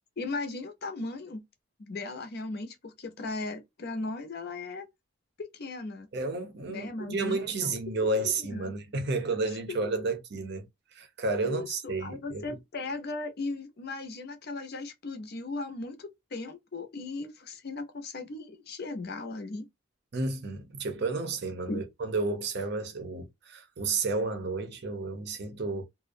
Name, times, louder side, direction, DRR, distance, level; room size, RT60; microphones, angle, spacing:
voice 1, 0.2-1.4 1.8-4.9 5.4-6.1 6.7-8.7 9.7-10.1 11.4-19.7 21.7-21.8, left 3 dB, 50° left, 0.5 m, -37 dB
voice 2, 6.1-10.7 10.9-12.6 20.1-25.8, right 3 dB, 55° right, 0.6 m, -31 dB
2.4 x 2.0 x 2.5 m
head